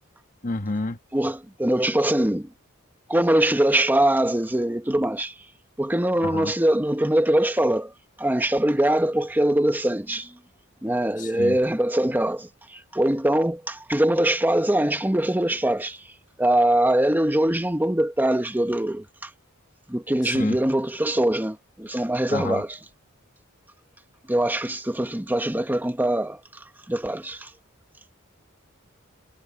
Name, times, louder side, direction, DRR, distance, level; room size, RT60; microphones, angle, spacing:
voice 1, 0.4-1.0 6.2-6.5 11.2-11.6 20.3-20.6 22.3-22.6, left 2 dB, 40° left, 1.4 m, -29 dB
voice 2, 1.1-2.5 3.1-5.3 5.8-10.4 10.8-16.1 16.4-19.3 19.9-22.8 24.3-27.5, right 1 dB, 10° right, 1.0 m, -23 dB
head